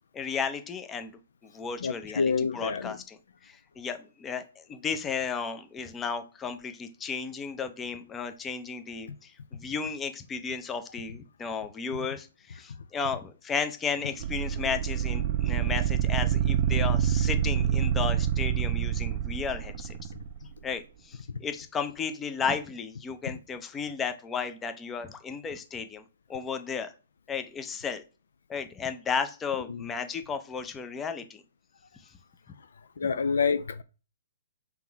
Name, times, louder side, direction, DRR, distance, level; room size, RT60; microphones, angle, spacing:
voice 1, 0.1-1.1 1.4-3.2 3.4-20.0 20.6-26.0 26.3-26.9 27.3-28.0 28.5-31.4, left 6 dB, 15° left, 0.6 m, -34 dB
voice 2, 1.8-3.0 29.7-29.9 33.0-33.8, left 5 dB, 70° left, 0.3 m, -27 dB
sound 1, 14.2-20.4, right 9 dB, 45° right, 0.4 m, -27 dB
3.6 x 2.9 x 4.6 m
hypercardioid pair, 130°, 0 cm